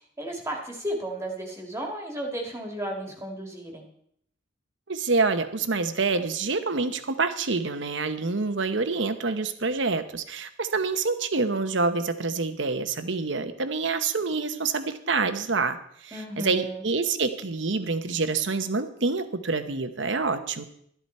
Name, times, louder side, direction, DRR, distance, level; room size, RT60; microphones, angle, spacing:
voice 1, 0.2-3.8 16.1-16.8, right 1 dB, 15° right, 0 dB, 1.9 m, -33 dB
voice 2, 4.9-20.6, right 4 dB, 75° right, 9 dB, 1.0 m, -27 dB
12.5 x 12.0 x 4.3 m, 0.69 s
head